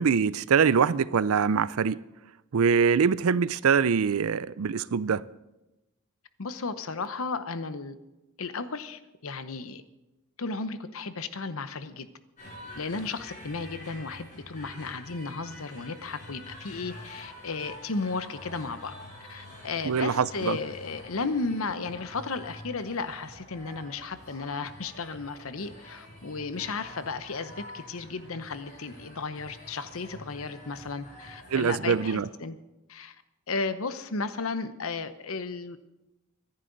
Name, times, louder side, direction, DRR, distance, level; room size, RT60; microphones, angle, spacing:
voice 1, 0.0-2.0 2.5-5.2 19.8-20.6 31.5-32.3, right 6 dB, 80° right, 0.5 m, -24 dB
voice 2, 6.4-8.0 8.4-9.8 10.4-12.1 12.8-18.9 19.3-32.6 32.9-33.2 33.5-35.8, left 4 dB, 75° left, 0.9 m, -34 dB
sound 1, 12.4-32.2, left 1 dB, 35° left, 6.2 m, -47 dB
24.0 x 10.5 x 4.0 m
head